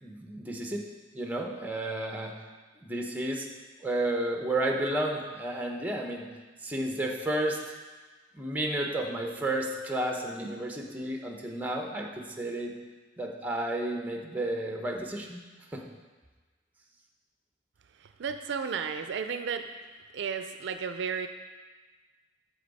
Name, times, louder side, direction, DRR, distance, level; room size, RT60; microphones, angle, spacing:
voice 1, 0.0-0.8 1.1-2.3 2.8-3.5 3.8-6.3 6.6-7.6 8.3-12.8 13.2-15.4 15.7-15.8, right 1 dB, 10° right, 1 dB, 0.8 m, -32 dB
voice 2, 18.0-19.7 20.1-21.3, right 6 dB, 65° right, 8 dB, 0.4 m, -33 dB
8.4 x 6.1 x 4.1 m, 1.3 s
head